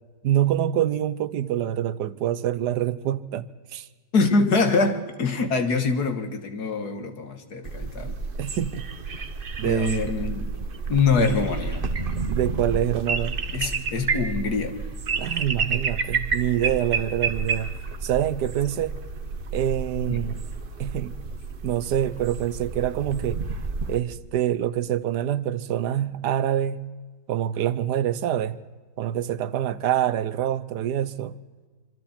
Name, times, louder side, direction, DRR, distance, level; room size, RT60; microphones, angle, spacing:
voice 1, 0.2-3.9 8.4-8.9 9.6-10.1 12.3-13.4 15.2-19.0 19.5-20.4 20.8-21.1 21.6-23.4 23.9-26.8 27.3-28.6 29.0-31.4, right 11 dB, 85° right, 1.4 m, -26 dB
voice 2, 4.1-8.2 9.6-10.5 10.9-11.9 13.5-14.8 20.1-20.2, left 4 dB, 70° left, 2.2 m, -24 dB
sound 1, 7.6-24.0, right 4 dB, 40° right, 1.0 m, -30 dB
26.0 x 25.0 x 4.4 m
omnidirectional pair, 1.7 m